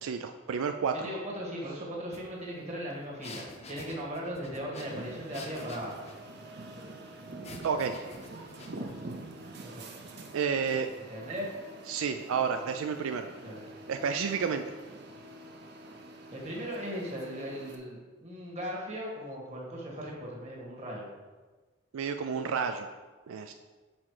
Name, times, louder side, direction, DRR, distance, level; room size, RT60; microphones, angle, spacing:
voice 1, 0.0-1.1 7.6-8.0 10.3-10.9 11.9-13.3 13.9-14.7 21.9-22.9 23.3-23.5, right 6 dB, 80° right, 7 dB, 0.3 m, -30 dB
voice 2, 1.0-6.0 9.6-9.9 11.0-11.5 13.4-13.6 16.3-21.1, equal, 30° right, -3 dB, 1.5 m, -38 dB
sound 1, 2.1-2.2 2.5-6.2 7.4-9.0, left 3 dB, 30° left, 0.6 m, -48 dB
sound 2, 4.8-17.8, right 2 dB, 50° right, 0.7 m, -46 dB
6.1 x 4.3 x 4.7 m, 1.3 s
head